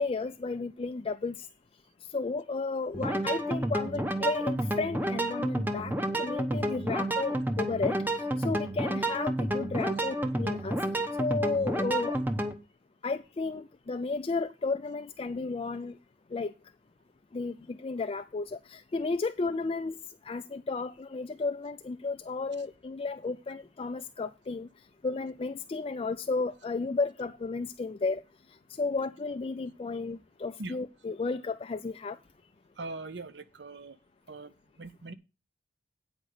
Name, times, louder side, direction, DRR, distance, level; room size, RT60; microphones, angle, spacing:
voice 1, 0.0-1.5 2.1-8.0 8.4-10.8 11.2-12.2 13.0-16.0 16.3-16.5 17.3-20.0 20.2-24.7 25.0-28.2 28.8-32.2, left 3 dB, 30° left, 0.4 m, -33 dB
sound 1, 2.9-12.5, right 1 dB, 10° right, 0.9 m, -30 dB
voice 2, 32.8-34.0 34.3-34.5 34.8-35.1, right 2 dB, 75° right, 0.8 m, -41 dB
9.0 x 5.1 x 6.5 m
head